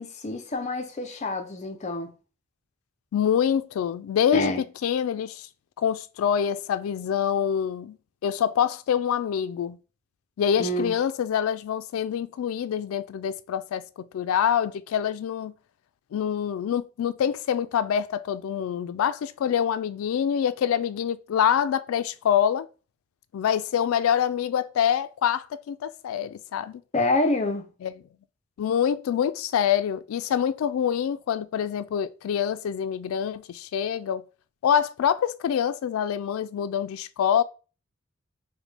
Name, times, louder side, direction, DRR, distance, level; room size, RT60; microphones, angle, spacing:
voice 1, 0.0-2.1 4.3-4.6 10.6-10.9 26.9-27.7, left 2 dB, 35° left, 0.5 m, -27 dB
voice 2, 3.1-5.5 5.8-8.0 8.2-9.8 10.4-15.5 16.1-22.7 23.3-26.8 27.8-27.9 28.6-34.2 34.6-37.4, left 8 dB, 85° left, 0.3 m, -25 dB
5.0 x 2.1 x 3.2 m
head